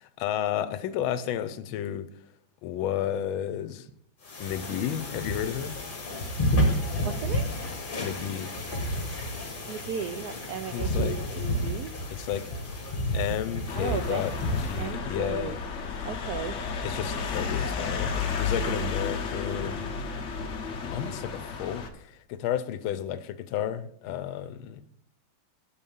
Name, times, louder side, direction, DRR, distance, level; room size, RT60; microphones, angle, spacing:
voice 1, 0.0-2.1 2.6-3.9 4.4-5.8 8.0-8.5 10.7-11.2 12.1-12.5 13.1-15.6 16.8-19.9 20.9-24.8, left 10 dB, 80° left, 13 dB, 1.4 m, -32 dB
sound 1, 4.2-14.9, equal, 30° left, 1.1 m, -30 dB
voice 2, 7.0-7.5 9.7-11.9 13.7-14.2 14.8-15.6 16.0-16.6, right 7 dB, 90° right, 8 dB, 0.8 m, -35 dB
sound 2, 13.7-21.9, left 5 dB, 65° left, 0.7 m, -32 dB
7.0 x 5.6 x 5.3 m, 0.69 s
omnidirectional pair, 2.3 m